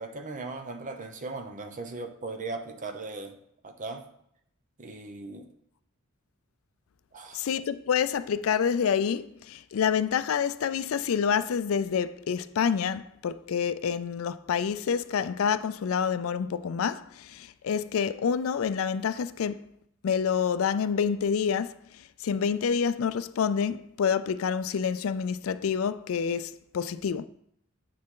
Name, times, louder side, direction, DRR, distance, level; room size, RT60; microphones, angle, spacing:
voice 1, 0.0-3.4 3.6-4.0 4.8-5.5 7.1-7.5, right 3 dB, 40° right, 0.7 m, -38 dB
voice 2, 7.3-19.7 20.0-27.3, left 7 dB, 80° left, 0.4 m, -28 dB
8.8 x 4.2 x 3.8 m
head